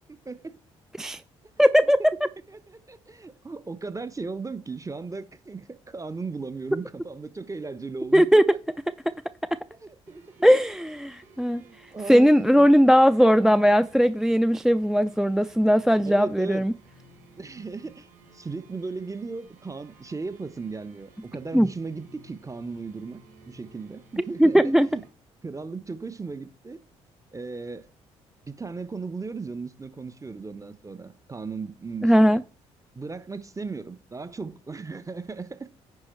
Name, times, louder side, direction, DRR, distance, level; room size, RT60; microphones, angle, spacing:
voice 1, 0.1-0.6 1.8-1.9 2.5-8.6 9.8-10.2 11.3-12.7 16.0-16.7 17.4-18.1 18.3-23.2 23.5-25.0 25.4-26.8 27.3-27.9 28.4-32.4 32.9-35.7, right 4 dB, 20° right, 1.1 m, -36 dB
voice 2, 1.6-2.1 8.1-8.4 10.4-11.6 12.1-16.7 21.5-21.7 24.4-24.9 32.0-32.4, equal, 5° right, 0.4 m, -18 dB
sound 1, 10.1-25.1, right 2 dB, 80° right, 4.7 m, -55 dB
9.6 x 5.2 x 4.5 m
hypercardioid pair, 50°, 15 cm